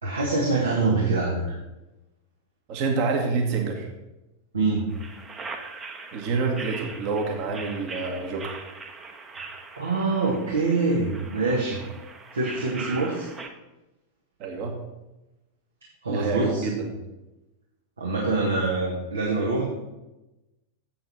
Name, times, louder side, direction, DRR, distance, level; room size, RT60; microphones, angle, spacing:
voice 1, 0.0-1.5 4.5-4.9 9.8-11.8 12.3-13.3 16.0-16.7 18.0-19.7, right 3 dB, 75° right, -3 dB, 1.8 m, -25 dB
voice 2, 2.7-3.9 6.1-8.6 14.4-14.7 16.1-16.9, right 4 dB, 45° right, 2 dB, 1.7 m, -27 dB
sound 1, 4.9-13.5, right 4 dB, 20° right, 1.1 m, -41 dB
7.8 x 7.7 x 5.6 m, 1.0 s
figure-of-eight pair, 90°, 0 cm